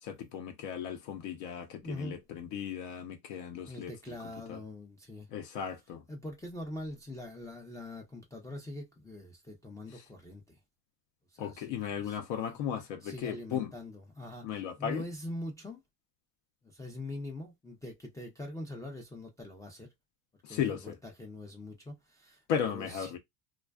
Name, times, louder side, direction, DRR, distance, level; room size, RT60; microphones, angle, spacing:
voice 1, 0.0-4.2 4.5-4.6 5.3-6.0 9.9-10.0 11.4-13.7 14.4-15.0 20.4-21.0 22.5-23.2, left 8 dB, 65° left, 0.7 m, -36 dB
voice 2, 1.8-2.2 3.7-5.3 6.1-10.6 11.3-11.8 12.0-12.2 13.0-15.8 16.6-19.9 20.3-23.1, left 1 dB, 10° left, 0.3 m, -43 dB
2.4 x 2.3 x 2.2 m
supercardioid pair, 120°, 46 cm